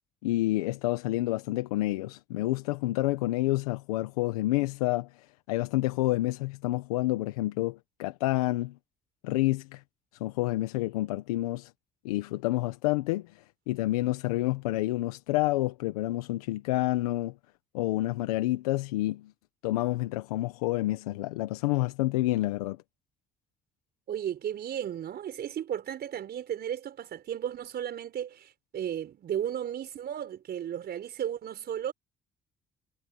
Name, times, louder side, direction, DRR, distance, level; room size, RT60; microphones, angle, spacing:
voice 1, 0.2-8.7 9.2-9.8 10.2-11.7 12.0-17.3 17.7-19.3 19.6-22.8, left 17 dB, 90° left, 1.3 m, -29 dB
voice 2, 24.1-31.9, right 10 dB, 60° right, 5.0 m, -34 dB
hypercardioid pair, 50°, 18 cm